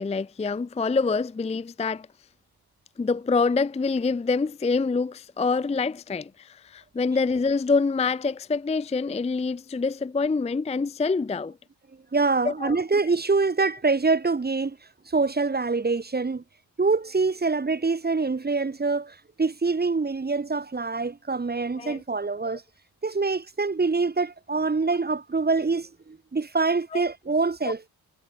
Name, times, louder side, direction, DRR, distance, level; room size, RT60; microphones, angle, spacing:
voice 1, 0.0-2.1 3.0-11.6 12.4-12.8 21.8-22.0 26.9-27.0 27.6-27.7, left 4 dB, 20° left, 0.4 m, -26 dB
voice 2, 12.1-14.8 15.1-16.4 16.8-22.6 23.0-27.9, right 4 dB, 25° right, 1.4 m, -25 dB
wide cardioid pair, 155°, 38 cm